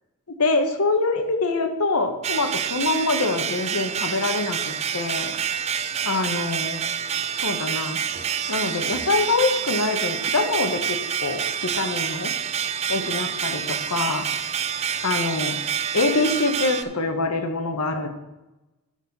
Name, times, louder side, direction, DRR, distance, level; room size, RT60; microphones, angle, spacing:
voice 1, 0.4-5.3 6.0-6.8 7.3-8.0 8.5-12.3 12.9-14.3 15.0-15.6 15.9-18.1, left 3 dB, 85° left, 7 dB, 1.1 m, -25 dB
sound 1, 2.2-16.8, right 8 dB, 30° right, 0.3 m, -27 dB
12.5 x 4.1 x 5.5 m, 1.0 s
head